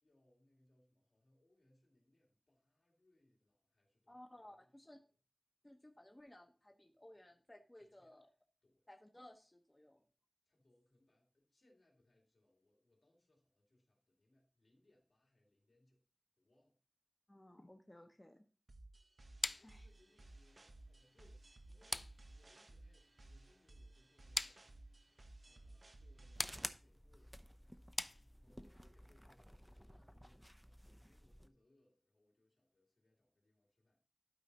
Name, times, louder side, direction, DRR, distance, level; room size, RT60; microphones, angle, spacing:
voice 1, 0.0-4.6 7.8-8.1 8.6-8.9 10.5-16.0 16.4-16.8 19.5-22.0 22.4-24.8 25.4-27.7 28.4-30.8 31.0-34.0, left 1 dB, 80° left, 3.1 m, -75 dB
voice 2, 4.1-5.0 5.6-8.3 8.9-10.0 17.3-18.4 19.6-19.9 28.6-28.8, left 1 dB, 25° left, 0.9 m, -59 dB
sound 1, 18.7-26.7, right 2 dB, 70° right, 1.1 m, -58 dB
sound 2, 19.4-28.8, left 2 dB, 50° left, 0.3 m, -46 dB
sound 3, 26.3-31.5, equal, ahead, 0.6 m, -53 dB
12.0 x 4.8 x 4.2 m
wide cardioid pair, 65°, 0 cm